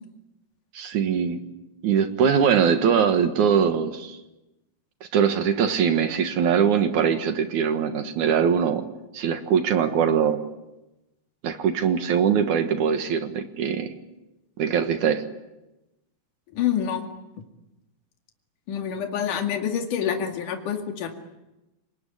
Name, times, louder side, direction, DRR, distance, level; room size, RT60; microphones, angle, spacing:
voice 1, 0.7-1.4 1.8-4.2 5.0-8.8 9.1-10.4 11.4-13.9 14.6-15.2, right 7 dB, 60° right, 8 dB, 2.5 m, -22 dB
voice 2, 16.5-17.1 18.7-21.1, left 9 dB, 55° left, 4 dB, 3.6 m, -27 dB
29.0 x 19.5 x 10.0 m, 0.99 s
omnidirectional pair, 4.7 m